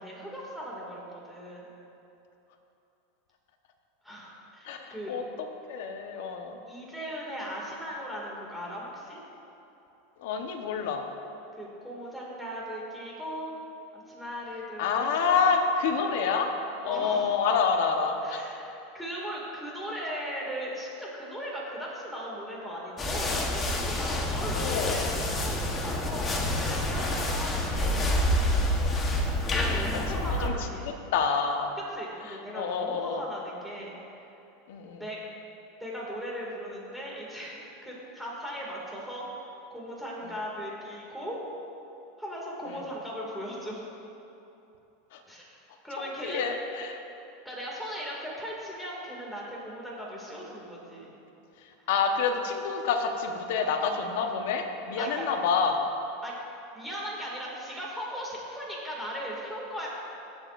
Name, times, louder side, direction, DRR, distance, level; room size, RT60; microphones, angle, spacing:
voice 1, 0.0-1.7 4.0-5.1 6.7-9.2 11.6-13.5 13.9-15.6 16.9-17.3 18.2-28.6 29.5-30.9 31.9-34.2 34.9-35.2 35.8-41.4 42.2-43.8 45.3-46.5 47.4-51.1 51.8-51.9 55.0-55.3 56.2-56.3 56.7-59.9, equal, ahead, -5 dB, 2.1 m, -38 dB
voice 2, 4.6-6.6 10.2-11.0 14.8-16.5 16.8-18.6 24.5-25.1 27.5-27.6 29.6-31.7 32.3-33.2 34.7-35.0 40.2-40.3 42.7-42.9 45.1-45.2 46.0-47.0 51.6-55.8, left 5 dB, 70° left, 4 dB, 1.0 m, -28 dB
sound 1, 23.0-30.5, left 1 dB, 20° left, 1.0 m, -28 dB
18.0 x 7.1 x 2.5 m, 2.9 s
supercardioid pair, 140°, 0 cm